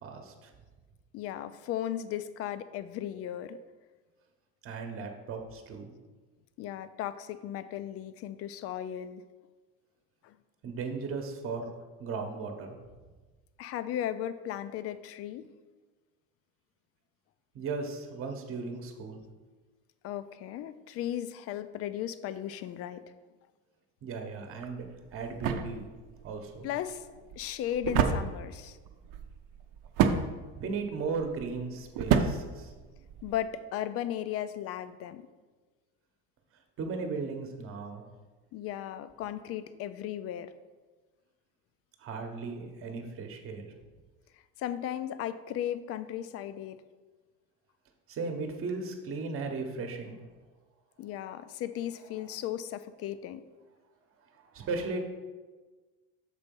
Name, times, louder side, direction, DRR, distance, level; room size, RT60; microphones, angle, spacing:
voice 1, 0.0-0.5 4.6-5.9 10.6-11.7 12.0-12.8 17.5-19.2 24.0-24.8 25.1-25.9 26.2-26.7 30.6-32.7 36.8-38.1 42.0-43.7 48.1-50.2 54.5-55.0, right 4 dB, 40° right, 4 dB, 1.0 m, -36 dB
voice 2, 1.1-3.6 6.6-9.2 10.2-10.4 13.6-15.5 20.0-23.0 26.6-27.0 27.4-28.8 33.2-35.3 38.5-40.5 44.6-46.8 51.0-53.4, left 11 dB, 45° left, 13 dB, 0.4 m, -36 dB
sound 1, 24.6-33.4, right 7 dB, 70° right, 0.7 m, -32 dB
6.7 x 4.0 x 5.3 m, 1.3 s
cardioid pair, 140°, 33 cm